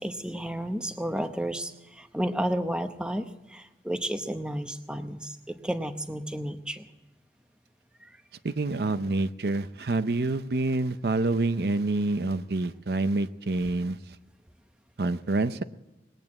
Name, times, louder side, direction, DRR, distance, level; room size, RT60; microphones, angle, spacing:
voice 1, 0.0-6.9 8.0-8.2, right 1 dB, 5° right, 7 dB, 0.8 m, -32 dB
voice 2, 8.4-14.0 15.0-15.6, right 2 dB, 65° right, 11 dB, 0.6 m, -27 dB
20.0 x 9.1 x 7.6 m, 1.0 s
head